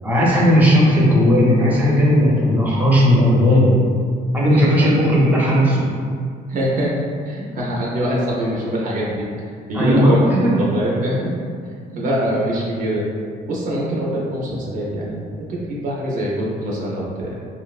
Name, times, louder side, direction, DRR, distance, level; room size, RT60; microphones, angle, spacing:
voice 1, 0.0-3.7 4.3-5.8 9.7-10.6, equal, 10° right, -6 dB, 0.6 m, -15 dB
voice 2, 4.5-4.9 6.5-6.9 7.2-9.2 9.7-10.3 10.6-11.3 11.9-13.1 13.5-17.4, equal, 50° right, -4 dB, 0.5 m, -23 dB
2.8 x 2.0 x 2.3 m, 2.2 s
cardioid pair, 110°, 17 cm